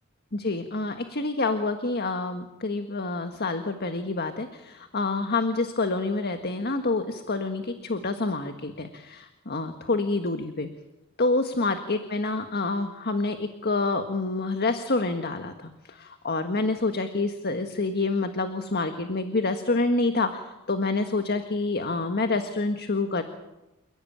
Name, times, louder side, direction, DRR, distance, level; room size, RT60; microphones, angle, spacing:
voice 1, 0.3-10.7 11.2-23.2, left 3 dB, 50° left, 7 dB, 1.6 m, -27 dB
29.5 x 16.5 x 8.9 m, 0.98 s
head